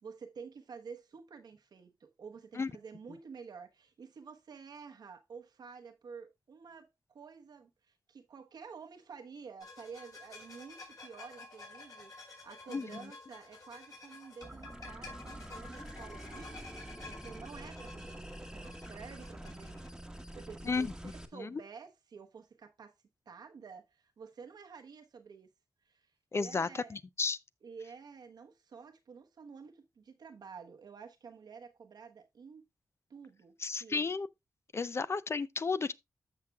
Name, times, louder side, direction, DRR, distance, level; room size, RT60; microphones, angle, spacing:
voice 1, 0.0-16.6 17.0-22.9 23.3-25.5 25.8-27.0 27.6-32.6 33.1-34.1, right 5 dB, 85° right, 1.1 m, -50 dB
sound 1, 9.6-19.9, left 3 dB, 60° left, 4.5 m, -51 dB
sound 2, 14.4-21.3, right 1 dB, 10° right, 1.2 m, -46 dB
voice 2, 26.3-27.4 33.6-34.3 34.7-35.9, left 4 dB, 40° left, 0.4 m, -33 dB
14.0 x 5.9 x 2.3 m
wide cardioid pair, 90°, 7 cm